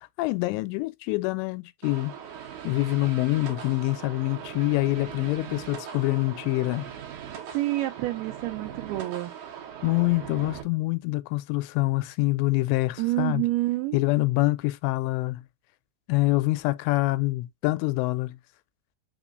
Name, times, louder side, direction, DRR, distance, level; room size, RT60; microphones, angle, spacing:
voice 1, 0.2-2.1 2.6-6.9 9.8-13.4 13.9-15.4 16.1-18.4, left 21 dB, 85° left, 2.8 m, -25 dB
sound 1, 1.8-10.6, right 8 dB, 65° right, 2.1 m, -40 dB
voice 2, 7.5-9.3 13.0-14.0, right 17 dB, 80° right, 2.3 m, -28 dB
6.0 x 3.3 x 2.4 m
omnidirectional pair, 5.0 m